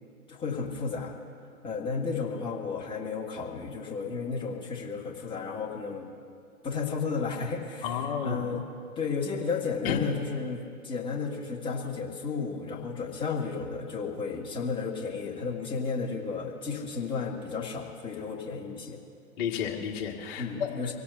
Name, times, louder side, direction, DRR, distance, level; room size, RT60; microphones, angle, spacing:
voice 1, 0.3-1.2 1.6-6.1 6.6-8.6 8.9-19.0 20.4-20.9, left 5 dB, 10° left, -2 dB, 1.7 m, -33 dB
voice 2, 7.8-8.4 9.8-10.0 12.7-12.8 19.4-20.7, left 8 dB, 35° left, 0 dB, 1.8 m, -31 dB
26.0 x 17.0 x 2.6 m, 2.4 s
figure-of-eight pair, 120°, 46 cm